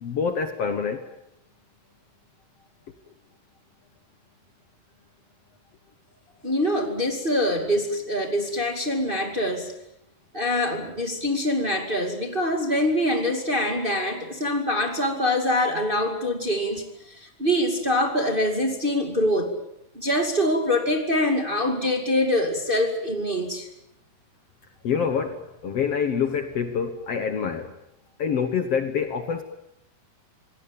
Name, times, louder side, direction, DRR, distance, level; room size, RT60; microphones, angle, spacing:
voice 1, 0.0-1.1 24.8-27.7 28.2-29.4, left 6 dB, 55° left, 7 dB, 1.9 m, -26 dB
voice 2, 6.4-9.7 10.3-19.5 19.9-23.7, left 1 dB, 20° right, 4 dB, 2.0 m, -24 dB
27.0 x 18.5 x 8.8 m, 0.82 s
omnidirectional pair, 3.9 m